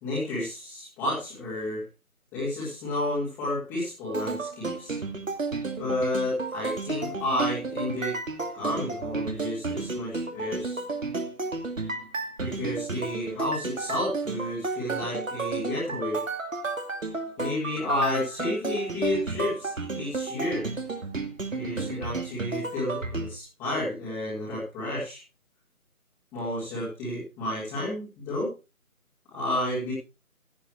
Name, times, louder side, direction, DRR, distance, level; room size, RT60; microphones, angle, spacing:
voice 1, 0.0-1.8 2.3-4.9 5.8-8.2 8.5-10.8 12.4-16.2 17.4-20.6 21.5-25.2 26.3-28.5 29.3-29.9, left 1 dB, 5° left, -9 dB, 2.3 m, -31 dB
sound 1, 4.1-23.4, right 3 dB, 60° right, 2.6 m, -32 dB
16.5 x 8.7 x 4.6 m, 0.30 s
figure-of-eight pair, 165°, 44 cm